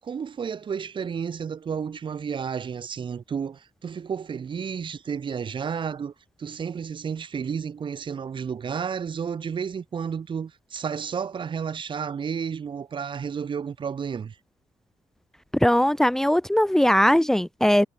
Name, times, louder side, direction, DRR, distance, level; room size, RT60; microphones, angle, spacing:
voice 1, 0.0-6.1 6.4-14.4, right 7 dB, 45° right, 4.1 m, -31 dB
voice 2, 15.5-17.9, equal, 5° left, 1.3 m, -20 dB
cardioid pair, 95°, 11 cm